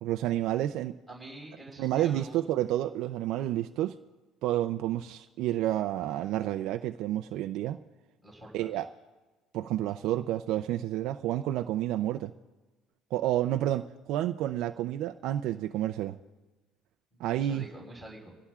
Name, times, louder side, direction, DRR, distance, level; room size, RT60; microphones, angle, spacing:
voice 1, 0.0-1.0 1.8-4.0 4.4-7.8 8.5-8.9 9.5-12.3 13.1-16.2 17.2-17.7, right 13 dB, 60° right, 6 dB, 0.5 m, -30 dB
voice 2, 1.1-2.4 8.2-8.8 17.3-18.3, right 1 dB, 5° left, -3 dB, 5.8 m, -46 dB
25.5 x 17.0 x 2.4 m, 1.2 s
cardioid pair, 155°, 0 cm